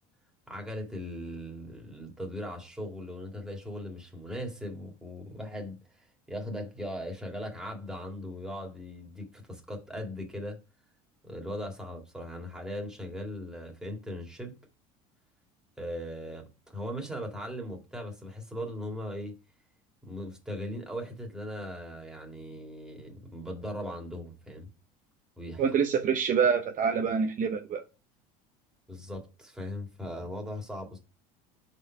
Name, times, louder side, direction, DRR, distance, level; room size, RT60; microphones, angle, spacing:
voice 1, 0.5-5.8 6.3-10.6 11.2-14.5 15.8-19.4 20.0-24.7 25.4-25.6 28.9-31.0, equal, 5° right, 2.2 m, -39 dB
voice 2, 25.6-27.8, right 6 dB, 40° right, 0.9 m, -26 dB
4.8 x 4.5 x 4.6 m
supercardioid pair, 95°, 20 cm